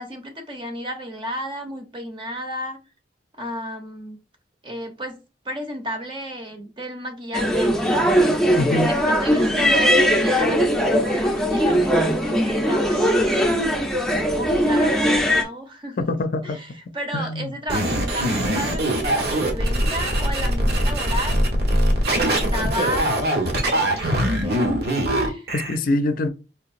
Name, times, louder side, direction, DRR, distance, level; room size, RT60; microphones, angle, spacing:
voice 1, 0.0-2.8 3.4-4.2 4.6-5.2 5.4-8.0 8.8-13.3 14.3-16.1 16.4-16.7 16.9-21.4 22.0-23.1 23.5-24.7 25.2-25.5, equal, 30° right, 0.9 m, -33 dB
sound 1, 7.3-15.4, equal, 5° left, 0.6 m, -20 dB
voice 2, 8.6-8.9 16.0-16.6 17.1-17.5 25.5-26.3, left 2 dB, 55° left, 0.5 m, -24 dB
sound 2, 17.7-25.8, right 1 dB, 60° right, 1.2 m, -22 dB
4.6 x 2.9 x 2.5 m
head